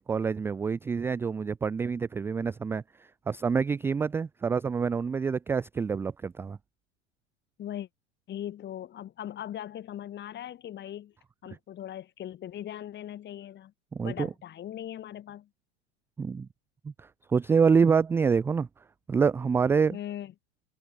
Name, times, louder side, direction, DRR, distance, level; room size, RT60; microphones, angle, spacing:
voice 1, 0.0-2.8 3.3-6.6 13.9-14.3 16.2-16.5 16.8-18.7 19.1-20.0, right 5 dB, 5° right, 0.3 m, -26 dB
voice 2, 8.3-11.1 11.4-13.7 14.0-15.5 19.9-20.3, left 11 dB, 30° left, 4.9 m, -39 dB
supercardioid pair, 130°, 35 cm